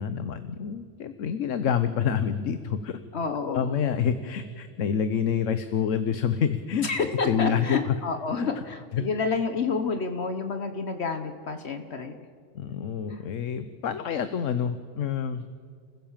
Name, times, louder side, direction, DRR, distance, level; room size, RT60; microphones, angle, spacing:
voice 1, 0.0-3.0 3.5-6.9 7.2-7.9 8.4-8.5 8.9-9.0 12.5-15.4, left 7 dB, 85° left, 11 dB, 1.2 m, -27 dB
voice 2, 3.1-3.8 6.8-12.2 13.1-13.2, left 4 dB, 60° left, 7 dB, 1.3 m, -29 dB
28.0 x 15.5 x 7.3 m, 2.1 s
omnidirectional pair, 1.3 m